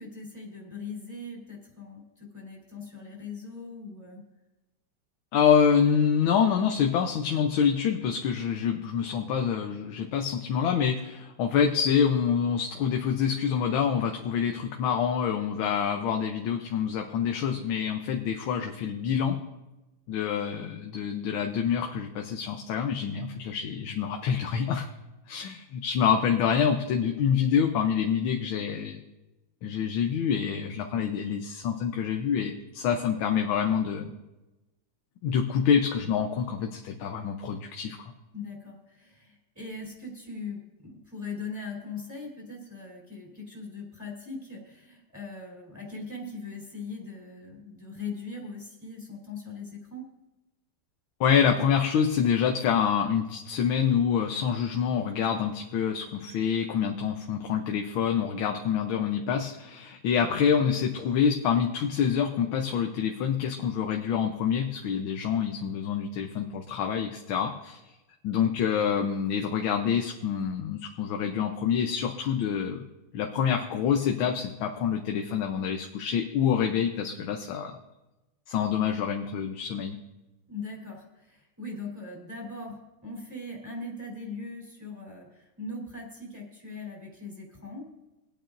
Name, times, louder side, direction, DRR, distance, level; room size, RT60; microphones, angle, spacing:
voice 1, 0.0-4.2 38.3-50.0 80.5-87.9, left 3 dB, 10° right, -3 dB, 3.4 m, -40 dB
voice 2, 5.3-19.4 20.1-24.8 25.3-29.0 29.6-34.1 35.2-38.1 51.2-67.8 68.2-72.8 73.1-77.8 78.5-80.0, left 7 dB, 80° left, 3 dB, 1.6 m, -26 dB
24.0 x 8.9 x 2.6 m, 1.1 s
omnidirectional pair, 2.2 m